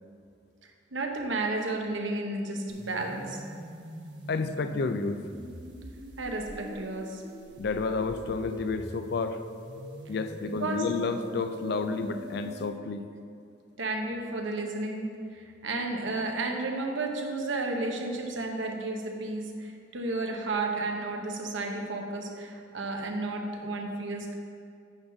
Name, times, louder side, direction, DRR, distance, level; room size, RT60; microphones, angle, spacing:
voice 1, 0.9-3.4 6.2-7.2 10.4-10.8 13.8-24.3, right 2 dB, 85° right, 2 dB, 1.0 m, -32 dB
sound 1, 2.7-12.7, equal, 65° right, 1.2 m, -44 dB
voice 2, 4.3-5.2 7.6-9.4 10.1-13.1, left 4 dB, 55° left, 9 dB, 0.4 m, -30 dB
8.9 x 4.0 x 5.8 m, 2.4 s
head